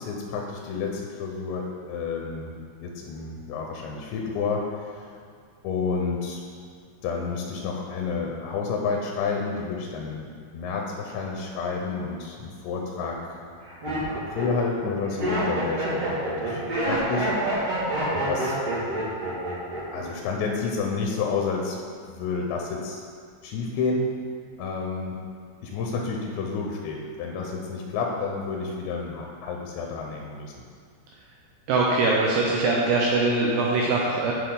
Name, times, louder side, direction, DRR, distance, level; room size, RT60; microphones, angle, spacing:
voice 1, 0.0-2.5 2.8-5.2 5.6-6.4 7.0-13.2 13.8-17.6 18.1-18.6 19.9-21.8 22.1-23.0 23.4-24.1 24.6-25.3 25.6-30.5, left 4 dB, 80° left, 0 dB, 2.9 m, -30 dB
Laughter, 12.4-12.8 13.4-20.1 20.3-20.8, right 1 dB, 45° right, 2.4 m, -28 dB
voice 2, 31.7-34.3, right 3 dB, 80° right, -3 dB, 2.4 m, -22 dB
7.3 x 6.6 x 3.9 m, 2.1 s
omnidirectional pair, 5.5 m